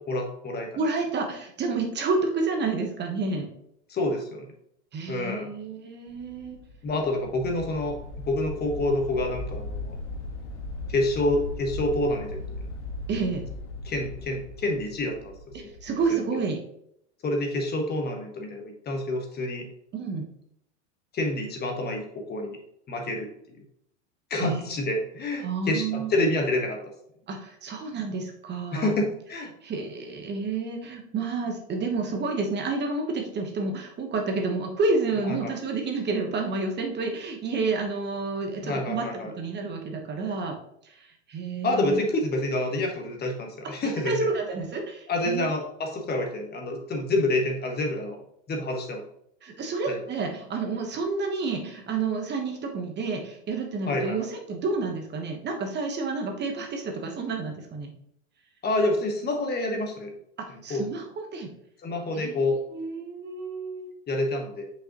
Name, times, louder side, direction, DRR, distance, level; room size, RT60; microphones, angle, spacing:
voice 1, 0.1-0.7 3.9-4.5 5.1-5.5 6.8-8.0 8.3-10.0 10.9-12.4 13.8-15.3 15.6-15.7 17.2-19.7 21.1-22.6 22.9-23.3 24.3-26.8 28.7-29.5 35.2-35.5 38.6-39.3 41.6-44.2 45.1-48.2 48.5-49.0 49.9-50.0 53.9-54.3 58.6-60.1 60.7-60.9 61.8-62.6 64.1-64.7, left 1 dB, 30° left, 3 dB, 1.3 m, -28 dB
voice 2, 0.7-3.5 4.9-6.6 13.1-13.4 15.5-16.6 19.9-20.3 24.4-24.7 25.4-26.1 27.3-28.9 29.6-40.6 40.8-42.0 43.9-45.5 49.4-57.9 60.6-61.1 61.3-61.5 62.1-63.9, right 3 dB, 30° right, 3 dB, 1.2 m, -30 dB
sound 1, 6.1-16.1, left 2 dB, 75° left, 1.6 m, -38 dB
6.3 x 5.3 x 3.0 m, 0.74 s
hypercardioid pair, 105°, 35 cm